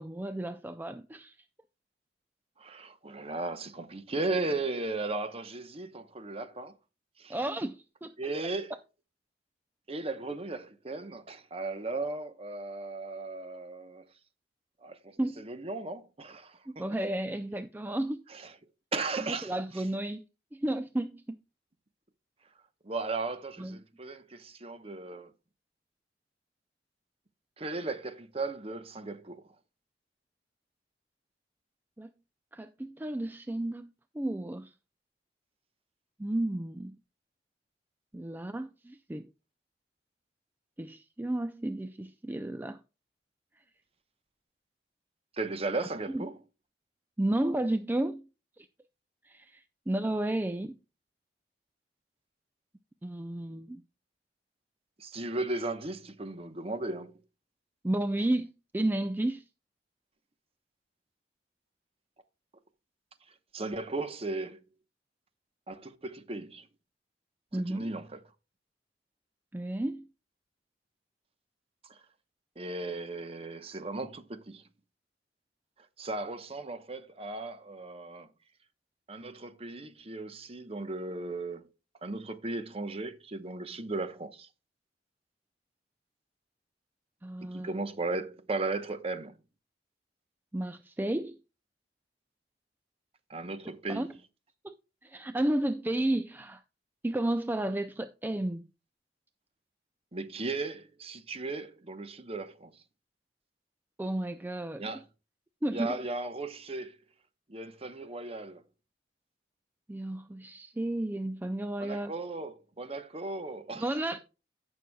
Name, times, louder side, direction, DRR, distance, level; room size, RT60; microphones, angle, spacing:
voice 1, 0.0-1.4 7.3-8.1 15.2-15.5 16.7-18.2 19.2-20.2 20.5-21.4 23.6-23.8 32.0-32.1 32.5-34.7 36.2-37.0 38.1-39.3 40.8-42.8 46.1-46.2 47.2-48.3 48.6-48.7 49.2-50.8 53.0-53.8 57.8-59.4 67.5-67.9 69.5-70.1 87.2-87.7 90.5-91.4 93.9-94.1 94.6-94.7 95.0-96.6 97.0-98.6 104.0-104.8 105.6-106.0 109.9-112.1 113.8-114.2, right 1 dB, 10° right, 0.4 m, -32 dB
voice 2, 2.6-6.7 7.2-7.4 8.2-8.7 9.9-14.0 14.8-16.8 18.3-18.5 18.9-19.8 22.8-25.3 27.6-29.4 45.4-46.4 55.0-57.1 63.5-64.6 65.7-66.7 67.5-68.2 71.9-72.0 72.6-74.6 76.0-78.3 79.1-81.6 82.0-84.5 87.4-89.4 93.3-94.1 100.1-102.7 104.8-105.0 105.7-107.0 107.5-108.6 111.8-113.9, right 3 dB, 35° right, 0.9 m, -36 dB
16.0 x 6.3 x 2.2 m
head